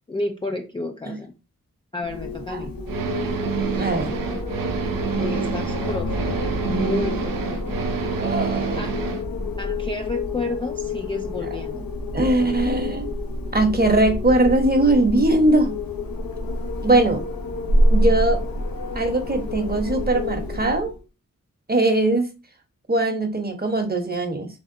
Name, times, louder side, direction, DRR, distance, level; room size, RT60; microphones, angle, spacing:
voice 1, 0.1-1.3 1.9-2.7 5.2-7.8 8.7-9.0 9.6-11.9, left 2 dB, 15° left, 4 dB, 0.3 m, -31 dB
Wind, 2.0-21.0, left 1 dB, 80° left, 0.8 m, -27 dB
sound 1, 2.9-9.2, right 6 dB, 80° right, 0.5 m, -27 dB
voice 2, 3.8-4.1 8.1-8.9 12.1-13.1 13.5-15.7 16.8-17.2 17.9-18.4 18.9-20.9 21.7-22.3 22.9-24.5, right 2 dB, 30° right, 5 dB, 0.9 m, -20 dB
3.5 x 2.3 x 2.6 m, 0.29 s
cardioid pair, 40°, 34 cm